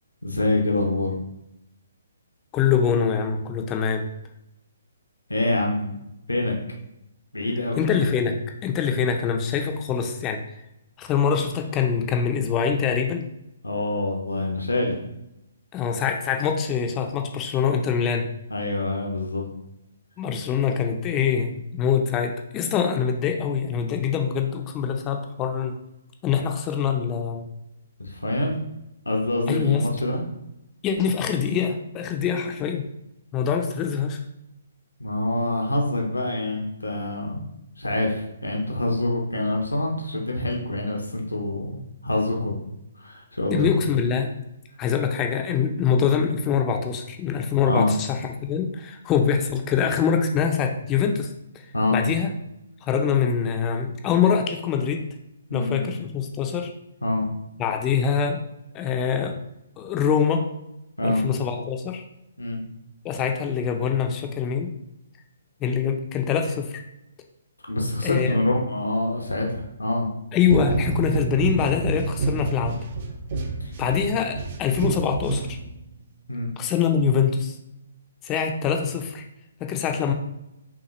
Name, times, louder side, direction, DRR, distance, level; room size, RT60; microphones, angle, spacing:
voice 1, 0.2-1.2 5.3-6.0 6.3-6.6 7.3-7.8 13.6-15.0 18.5-19.5 28.0-28.6 29.1-30.2 35.0-37.4 37.8-42.5 43.0-43.7 47.7-47.9 51.7-52.0 55.5-55.9 57.0-57.3 61.0-61.2 62.4-62.6 67.7-70.1 73.6-73.7 76.3-76.5, left 2 dB, 90° left, 1 dB, 0.8 m, -25 dB
voice 2, 2.5-4.0 7.8-8.4 8.6-10.4 11.0-13.2 15.7-18.3 20.2-25.8 26.2-27.4 29.5-29.9 30.8-32.9 33.3-34.2 43.5-44.3 44.8-51.3 51.9-52.3 52.9-55.0 55.5-56.7 57.6-58.4 58.7-59.3 59.8-60.5 61.0-62.0 63.0-64.7 65.6-66.7 68.0-68.4 70.3-72.8 73.8-75.6 76.6-77.6 78.2-79.2 79.6-80.1, left 7 dB, 25° left, 4 dB, 0.5 m, -24 dB
sound 1, 70.5-76.0, right 3 dB, 45° right, 0.5 m, -28 dB
5.7 x 2.4 x 3.0 m, 0.85 s
figure-of-eight pair, 135°, 0 cm